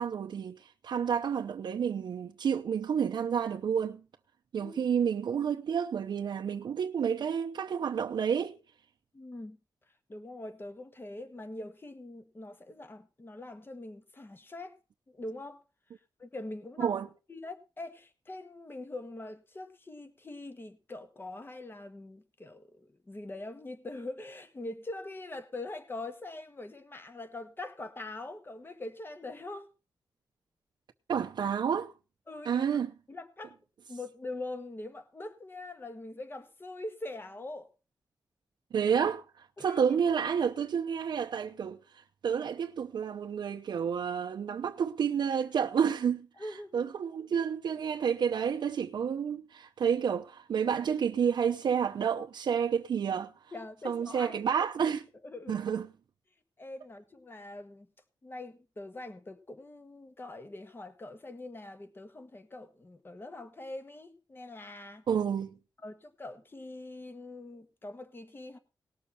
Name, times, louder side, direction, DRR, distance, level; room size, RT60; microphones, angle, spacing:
voice 1, 0.0-4.0 4.5-8.6 16.8-17.1 31.1-31.9 32.4-32.9 38.7-46.3 46.7-53.3 53.8-55.0 55.5-55.9 65.1-65.6, right 7 dB, 90° right, 0.8 m, -30 dB
voice 2, 9.1-9.6 10.1-14.8 15.1-15.6 16.2-16.9 17.3-29.7 32.3-32.6 33.1-33.5 33.9-37.7 39.6-40.0 46.4-46.9 53.5-54.4 55.2-55.6 56.6-57.9 58.2-65.0 65.8-68.6, left 2 dB, 30° left, 1.6 m, -43 dB
19.0 x 7.0 x 4.2 m
wide cardioid pair, 105°, 8 cm